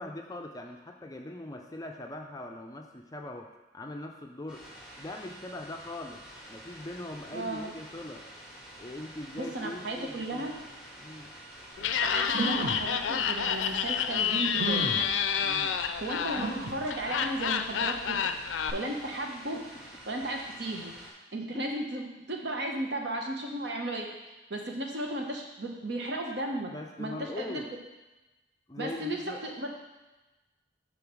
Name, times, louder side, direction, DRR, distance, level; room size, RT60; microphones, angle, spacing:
voice 1, 0.0-4.6 5.0-6.2 6.5-8.2 8.8-10.6 11.0-11.3 15.4-15.8 19.5-19.7 21.5-21.6 26.7-27.7 28.7-29.4, left 1 dB, 20° left, 2 dB, 0.4 m, -41 dB
sound 1, 4.5-21.1, right 1 dB, 5° right, 1.3 m, -49 dB
voice 2, 7.3-7.7 9.4-10.5 12.0-14.9 16.0-18.3 18.7-19.6 20.1-20.9 21.3-24.1 24.5-26.7 27.0-27.6 28.8-29.7, right 1 dB, 65° right, 1 dB, 1.0 m, -35 dB
Laughter, 11.8-18.7, left 7 dB, 85° left, 0.4 m, -29 dB
sound 2, 11.9-12.0 12.3-12.9 13.6-13.7 14.6-15.1 16.4-16.8 17.4-17.5 17.8-17.9, right 2 dB, 40° right, 2.2 m, -32 dB
5.2 x 3.9 x 6.0 m, 1.1 s
head